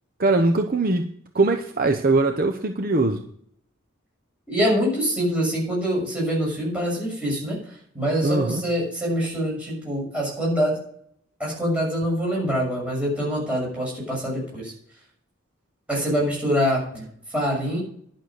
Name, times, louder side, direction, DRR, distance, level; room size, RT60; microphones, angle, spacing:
voice 1, 0.2-1.1 1.3-3.2 8.2-8.6, right 2 dB, 45° right, 5 dB, 0.8 m, -21 dB
voice 2, 4.5-10.8 11.4-14.7 15.9-17.8, equal, 5° right, -4 dB, 6.6 m, -25 dB
11.0 x 6.4 x 8.0 m, 0.64 s
head